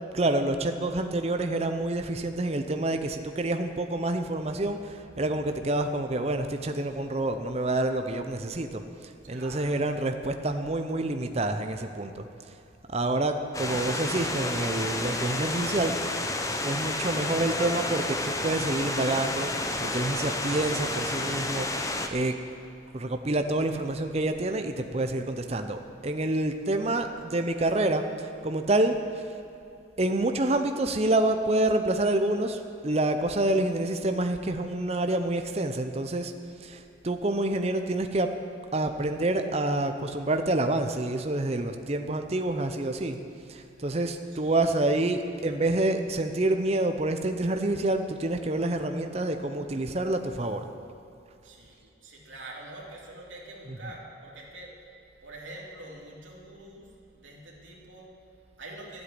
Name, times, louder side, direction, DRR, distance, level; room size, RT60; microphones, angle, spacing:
voice 1, 0.1-8.8 9.3-12.3 12.9-15.9 16.6-22.3 22.9-29.2 30.0-36.3 36.6-38.3 38.7-43.2 43.5-50.7 53.6-54.0, right 2 dB, 35° right, 6 dB, 0.7 m, -28 dB
voice 2, 9.2-9.8 44.3-44.7 51.4-59.0, right 2 dB, 90° right, -3 dB, 2.9 m, -46 dB
sound 1, 13.5-22.1, left 2 dB, 15° left, 0.7 m, -30 dB
12.5 x 8.2 x 10.0 m, 2.7 s
head